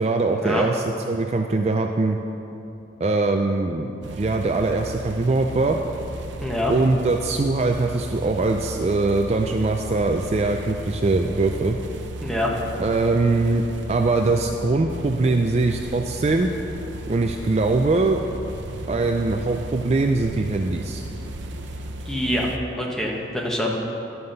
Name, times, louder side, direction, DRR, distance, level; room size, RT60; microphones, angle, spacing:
voice 1, 0.0-2.2 3.0-5.8 6.7-11.8 12.8-16.5 17.1-18.2 18.9-21.0, right 3 dB, 35° right, 4 dB, 0.3 m, -22 dB
sound 1, 4.0-22.6, right 1 dB, 85° right, 0.7 m, -35 dB
voice 2, 6.4-6.7 12.2-12.5 22.1-22.5 22.8-23.8, left 1 dB, 5° left, -3 dB, 1.1 m, -25 dB
11.0 x 5.6 x 6.6 m, 3.0 s
head